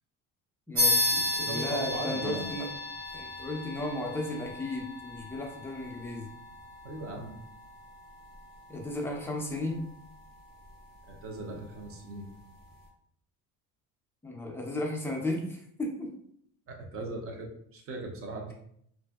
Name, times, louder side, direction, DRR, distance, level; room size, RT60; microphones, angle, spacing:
voice 1, 0.7-2.7 3.1-6.3 8.7-9.9 14.2-16.1, left 1 dB, 5° left, -1 dB, 0.5 m, -34 dB
sound 1, 0.8-10.7, left 2 dB, 80° right, 1.3 m, -34 dB
voice 2, 1.4-2.5 6.8-7.4 11.1-12.3 16.7-18.5, right 2 dB, 40° right, 2 dB, 0.6 m, -38 dB
2.6 x 2.6 x 2.3 m, 0.67 s
cardioid pair, 130°, 36 cm